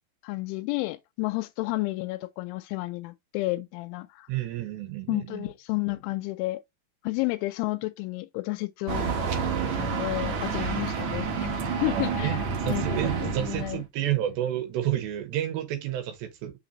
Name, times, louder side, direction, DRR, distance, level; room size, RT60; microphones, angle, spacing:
voice 1, 0.2-4.3 5.1-6.6 7.0-9.1 9.7-11.5 11.8-13.8, left 21 dB, 85° left, 3.0 m, -31 dB
voice 2, 4.3-5.5 11.9-16.5, right 12 dB, 75° right, 3.1 m, -30 dB
sound 1, 8.9-13.8, right 5 dB, 60° right, 2.0 m, -29 dB
6.5 x 5.8 x 2.8 m
omnidirectional pair, 5.4 m